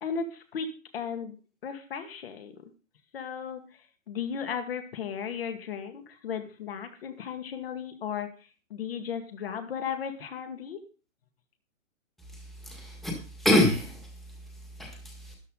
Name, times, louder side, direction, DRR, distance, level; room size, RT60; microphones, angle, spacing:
voice 1, 0.0-0.7 0.9-1.4 1.6-2.6 3.1-3.8 4.1-8.3 8.7-10.8, left 7 dB, 45° left, 6 dB, 1.9 m, -35 dB
voice 2, 12.3-14.1 14.8-15.4, left 1 dB, ahead, -1 dB, 1.7 m, -27 dB
13.0 x 11.0 x 3.9 m, 0.36 s
hypercardioid pair, 160°, 40 cm